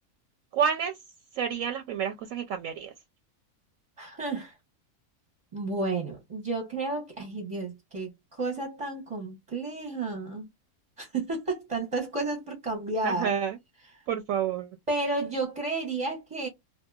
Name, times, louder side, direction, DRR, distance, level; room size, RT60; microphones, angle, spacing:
voice 1, 0.5-1.0 1.3-2.9 13.0-13.6 14.1-14.7, right 8 dB, 70° right, 0.9 m, -29 dB
voice 2, 4.0-4.6 5.5-10.5 11.0-13.3 14.9-16.5, right 3 dB, 30° right, 0.7 m, -32 dB
2.7 x 2.5 x 2.3 m
omnidirectional pair, 1.6 m